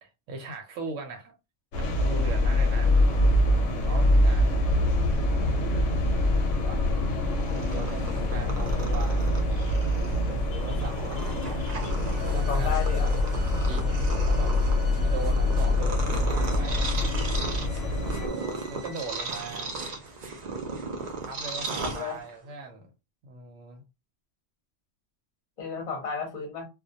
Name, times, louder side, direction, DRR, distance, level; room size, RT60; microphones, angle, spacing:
voice 1, 0.0-1.3 1.8-3.0 3.8-4.7 6.7-7.2 7.5-9.3 10.3-11.3 12.2-12.7 13.6-14.5 14.8-16.9 18.2-19.7 21.2-22.9 23.2-23.8 25.9-26.0, right 3 dB, 85° right, 0.9 m, -39 dB
sound 1, 1.7-18.3, left 1 dB, 90° left, 0.9 m, -24 dB
Purr, 7.3-22.5, right 3 dB, 65° right, 0.4 m, -37 dB
sound 2, 11.1-11.6 12.1-19.6, right 2 dB, 45° right, 0.8 m, -50 dB
voice 2, 12.3-13.1 21.8-22.2 25.6-26.7, left 5 dB, 40° left, 0.7 m, -33 dB
2.1 x 2.1 x 2.7 m
omnidirectional pair, 1.2 m